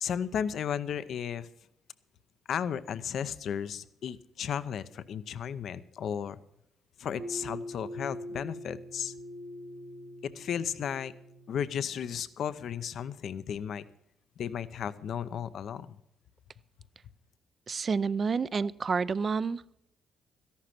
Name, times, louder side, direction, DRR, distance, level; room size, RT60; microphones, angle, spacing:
voice 1, 0.0-1.5 2.5-6.4 7.0-9.1 10.2-11.1 11.5-13.8 14.4-15.9, left 8 dB, 65° left, 14 dB, 0.7 m, -34 dB
sound 1, 7.2-12.4, equal, 70° right, 3.0 m, -43 dB
voice 2, 17.7-19.6, right 5 dB, 40° right, 18 dB, 0.5 m, -29 dB
13.5 x 11.5 x 5.9 m, 0.76 s
cardioid pair, 90°, 0 cm